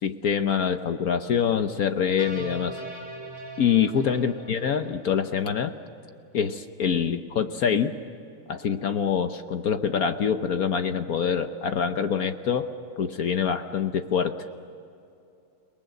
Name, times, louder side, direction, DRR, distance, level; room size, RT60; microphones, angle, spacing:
voice 1, 0.0-2.8 3.6-5.7 6.3-7.9 8.5-12.7 13.0-14.4, left 7 dB, 55° left, 8 dB, 1.1 m, -25 dB
sound 1, 2.2-5.5, right 2 dB, 10° right, 5.6 m, -41 dB
29.5 x 19.5 x 7.9 m, 2.6 s
omnidirectional pair, 2.4 m